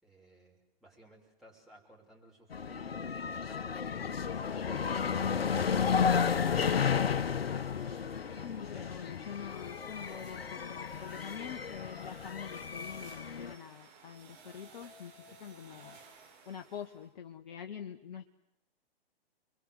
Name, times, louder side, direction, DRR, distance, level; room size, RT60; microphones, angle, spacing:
voice 1, 0.0-6.1 7.9-9.0 15.3-15.4, right 1 dB, ahead, -3 dB, 6.3 m, -59 dB
sound 1, 2.5-13.5, left 6 dB, 75° left, 1.3 m, -33 dB
sound 2, 3.9-17.1, right 4 dB, 35° right, 5.9 m, -58 dB
voice 2, 8.4-15.1 15.4-16.0 16.5-18.3, left 8 dB, 50° left, 4 dB, 1.4 m, -45 dB
30.0 x 22.5 x 8.0 m, 0.81 s
figure-of-eight pair, 120°, 30 cm